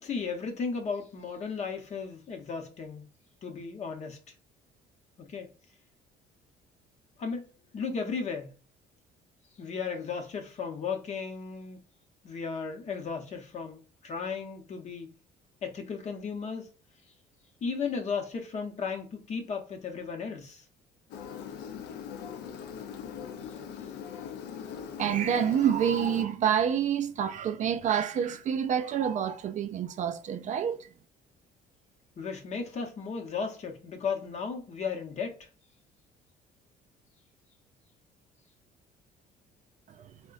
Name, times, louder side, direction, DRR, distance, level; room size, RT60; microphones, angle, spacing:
voice 1, 0.0-3.1 3.4-4.2 5.2-5.5 7.2-7.5 7.7-8.5 9.6-11.8 12.2-15.1 15.6-16.7 17.6-20.6 32.2-35.5, left 5 dB, 45° left, 0.8 m, -35 dB
Engine, 21.1-26.3, left 7 dB, 85° left, 0.5 m, -41 dB
voice 2, 25.0-30.9 39.9-40.1, right 8 dB, 45° right, 0.4 m, -28 dB
3.5 x 2.1 x 2.4 m
cardioid pair, 110°, 17 cm